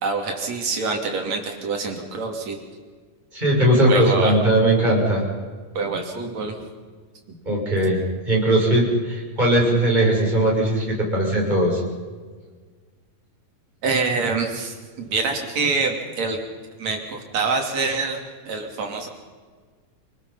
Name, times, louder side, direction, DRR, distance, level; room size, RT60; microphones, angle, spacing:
voice 1, 0.0-2.6 3.9-4.4 5.7-6.6 7.3-7.4 13.8-14.7 15.1-16.4 16.8-19.1, right 4 dB, 55° right, 2 dB, 4.0 m, -25 dB
voice 2, 3.3-5.2 7.4-8.0 8.3-11.8, right 1 dB, 10° right, -2 dB, 6.4 m, -19 dB
28.0 x 19.5 x 5.7 m, 1.5 s
omnidirectional pair, 3.8 m